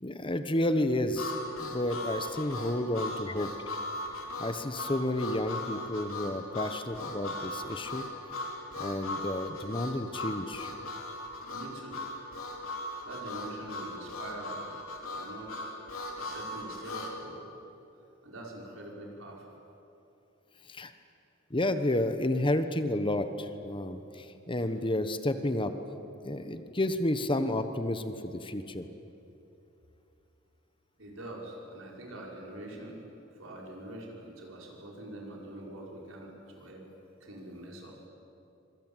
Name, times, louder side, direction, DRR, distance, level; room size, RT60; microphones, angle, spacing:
voice 1, 0.0-3.5 4.4-8.1 8.8-10.7 20.7-20.9 21.5-25.7 26.2-28.9, left 1 dB, 25° left, 9 dB, 1.2 m, -31 dB
Harmonica, 1.2-17.1, left 2 dB, 85° left, 4.0 m, -38 dB
voice 2, 11.5-12.0 13.0-14.7 15.1-15.7 16.2-17.5 18.2-19.5 31.0-33.0 33.3-36.8 37.2-37.9, right 1 dB, 75° right, -1 dB, 6.0 m, -44 dB
26.0 x 23.0 x 9.2 m, 2.9 s
head